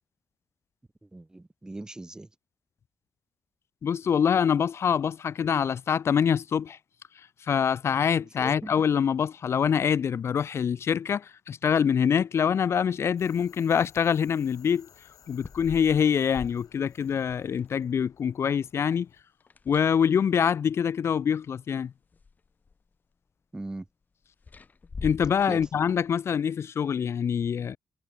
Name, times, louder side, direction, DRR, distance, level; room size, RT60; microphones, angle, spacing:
voice 1, 1.0-2.3 8.2-8.7 23.5-23.9 25.5-25.6, right 2 dB, 10° right, 2.1 m, -39 dB
voice 2, 3.8-6.8 7.5-14.9 15.3-19.1 19.7-21.9 25.0-27.8, left 7 dB, 45° left, 0.5 m, -25 dB
sound 1, 13.2-19.2, left 10 dB, 75° left, 2.8 m, -58 dB
sound 2, 15.2-17.7 19.4-20.3 21.5-21.6 22.0-22.9 24.4-26.1, left 4 dB, 30° left, 3.2 m, -43 dB
wide cardioid pair, 175°, 6 cm